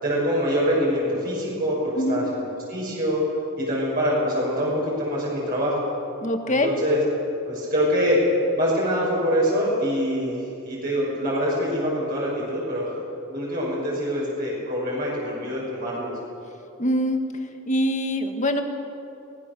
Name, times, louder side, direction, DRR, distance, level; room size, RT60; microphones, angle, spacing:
voice 1, 0.0-2.4 2.7-3.2 3.6-5.8 6.5-7.0 7.4-8.2 8.5-12.9 13.3-16.1, equal, 45° right, -5 dB, 6.4 m, -25 dB
voice 2, 6.2-6.7 16.8-17.2 17.7-18.6, equal, 35° left, 5 dB, 1.8 m, -23 dB
24.0 x 19.0 x 7.0 m, 2.7 s
head